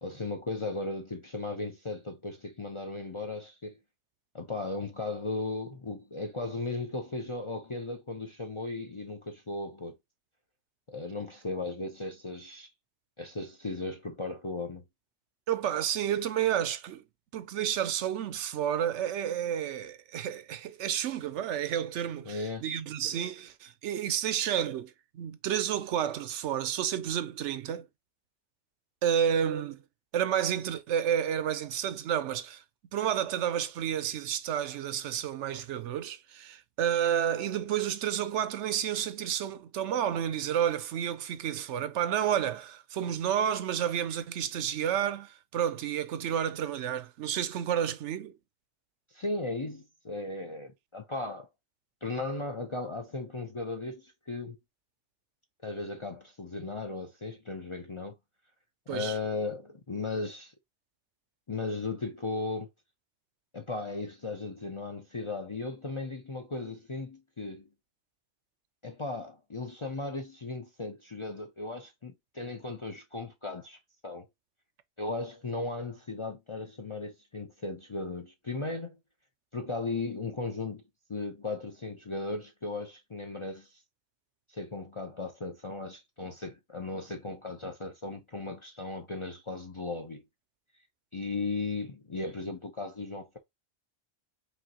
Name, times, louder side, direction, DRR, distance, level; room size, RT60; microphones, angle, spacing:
voice 1, 0.0-3.8 4.3-10.0 10.9-12.7 13.2-14.8 22.2-22.6 49.1-51.5 52.0-54.6 55.6-58.1 58.9-60.5 61.5-62.7 63.5-67.7 68.8-74.3 75.0-79.0 79.5-80.8 81.1-83.8 84.5-90.2 91.1-93.4, left 3 dB, 35° left, 0.6 m, -36 dB
voice 2, 15.5-17.0 17.3-27.9 29.0-29.8 30.1-32.6 32.9-48.3 58.9-59.2, right 9 dB, 80° right, 0.9 m, -30 dB
5.1 x 3.0 x 2.9 m
omnidirectional pair, 1.2 m